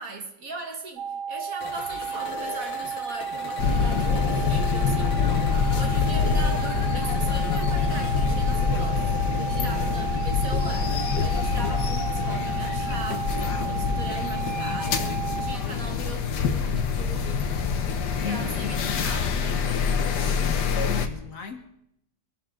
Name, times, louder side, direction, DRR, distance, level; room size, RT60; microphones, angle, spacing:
voice 1, 0.0-15.1 15.4-17.5 18.2-19.7, right 3 dB, 50° right, 2.0 m, -39 dB
sound 1, 1.0-15.6, right 6 dB, 70° right, 1.5 m, -33 dB
sound 2, 1.6-18.5, left 6 dB, 85° left, 1.8 m, -41 dB
sound 3, 3.6-21.1, left 6 dB, 70° left, 1.6 m, -25 dB
voice 2, 18.2-19.1 20.4-21.6, left 5 dB, 55° left, 1.3 m, -36 dB
23.5 x 11.5 x 3.8 m
omnidirectional pair, 1.9 m